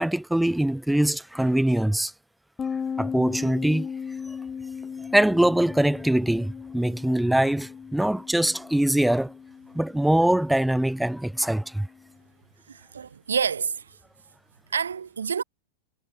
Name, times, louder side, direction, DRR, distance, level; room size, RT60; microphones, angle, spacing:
voice 1, 0.0-2.1 3.0-3.9 5.1-9.3 9.7-11.9, right 1 dB, 5° right, 0.7 m, -23 dB
sound 1, 2.6-12.0, left 6 dB, 20° left, 1.1 m, -37 dB
voice 2, 12.7-14.0 14.7-15.4, right 7 dB, 70° right, 2.1 m, -28 dB
figure-of-eight pair, 90°, 0 cm